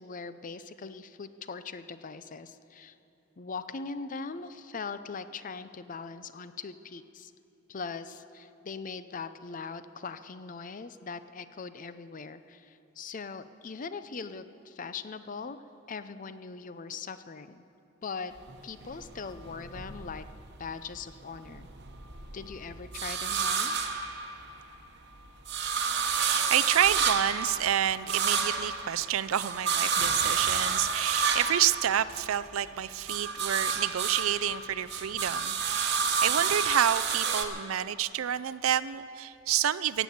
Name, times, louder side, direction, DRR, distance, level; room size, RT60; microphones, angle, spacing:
voice 1, 0.0-2.9 3.4-7.3 7.7-15.6 15.9-17.6 18.0-18.3 18.6-20.3 20.6-21.7 22.3-23.9, left 4 dB, 40° left, 12 dB, 0.5 m, -40 dB
sound 1, 18.4-20.7 21.1-24.8 25.1-32.6 32.9-37.5, right 5 dB, 55° right, 1.0 m, -30 dB
voice 2, 25.9-40.0, right 10 dB, 80° right, 16 dB, 0.4 m, -29 dB
16.0 x 8.2 x 8.6 m, 2.9 s
head